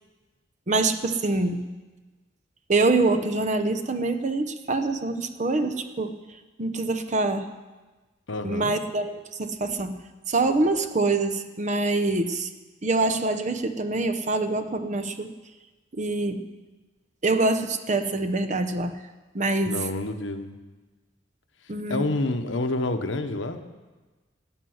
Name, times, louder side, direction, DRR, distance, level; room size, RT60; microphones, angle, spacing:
voice 1, 0.7-1.6 2.7-6.1 6.6-7.5 8.4-10.0 10.3-12.5 12.8-15.3 15.9-16.5 17.2-19.0 19.3-19.8 21.7-22.0, right 2 dB, 40° right, 7 dB, 0.8 m, -25 dB
voice 2, 8.3-8.8 19.7-20.5 21.9-23.6, left 2 dB, 85° left, 7 dB, 1.1 m, -28 dB
12.5 x 9.6 x 7.8 m, 1.2 s
head